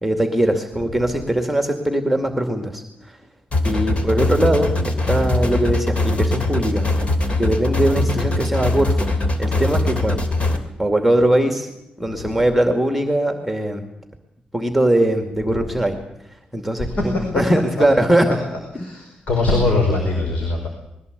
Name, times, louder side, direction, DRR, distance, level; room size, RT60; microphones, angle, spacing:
voice 1, 0.0-3.2 3.6-6.9 7.4-9.1 9.4-10.2 10.8-11.7 12.0-13.8 14.5-16.0 16.5-18.3 18.7-18.9, right 1 dB, ahead, 5 dB, 2.3 m, -20 dB
sound 1, 3.5-10.6, left 2 dB, 45° left, 3.1 m, -21 dB
voice 2, 16.8-17.4 18.2-18.4 18.7-20.7, left 2 dB, 65° left, 2 dB, 5.1 m, -22 dB
21.5 x 16.5 x 8.2 m, 0.87 s
cardioid pair, 105°, 3 cm